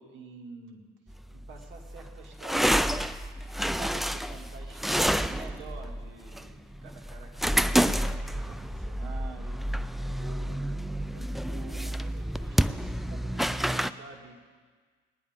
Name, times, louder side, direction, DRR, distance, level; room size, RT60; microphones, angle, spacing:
voice 1, 0.0-3.2 3.7-14.5, right 5 dB, 80° right, 1 dB, 2.2 m, -48 dB
sound 1, 1.1-13.9, equal, ahead, 0.3 m, -29 dB
19.5 x 10.5 x 3.6 m, 1.5 s
cardioid pair, 95°, 19 cm